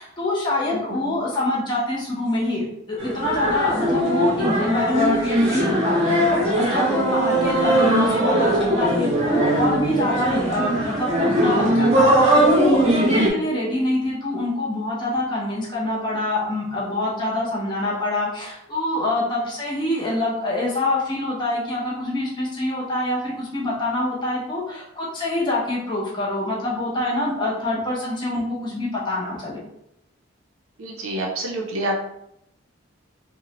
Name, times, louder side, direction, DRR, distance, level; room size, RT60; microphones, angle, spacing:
voice 1, 0.0-29.6, left 1 dB, 20° left, -5 dB, 0.5 m, -25 dB
sound 1, 3.0-13.3, right 1 dB, 30° right, 0.6 m, -20 dB
voice 2, 30.8-31.9, right 1 dB, 85° right, -1 dB, 0.5 m, -28 dB
2.9 x 2.1 x 2.7 m, 0.78 s
head